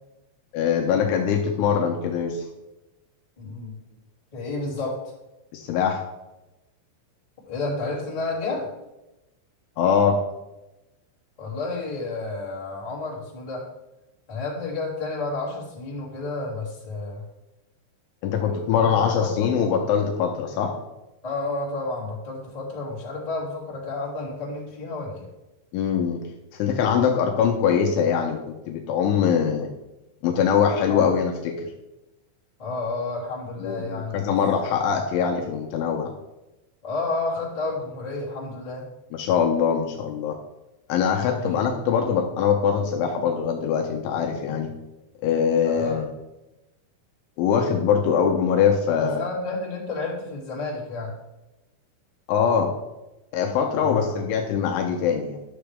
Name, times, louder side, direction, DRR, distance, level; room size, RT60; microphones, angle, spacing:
voice 1, 0.5-2.5 5.5-6.0 9.8-10.2 18.2-20.7 25.7-26.2 26.5-29.7 30.2-31.7 33.6-36.1 39.1-40.4 40.9-44.7 45.2-46.1 47.4-49.3 52.3-52.7 53.3-55.4, left 7 dB, 80° left, 1 dB, 3.0 m, -22 dB
voice 2, 3.4-3.8 4.3-5.0 7.4-8.6 11.4-13.6 14.3-17.2 18.5-18.9 19.2-19.5 21.2-25.3 30.9-31.1 32.6-34.2 34.6-34.8 36.8-38.8 41.3-41.6 45.6-46.0 49.0-51.1 53.7-54.1, left 3 dB, 15° left, -7 dB, 1.3 m, -31 dB
10.0 x 6.9 x 3.4 m, 0.97 s
omnidirectional pair, 6.0 m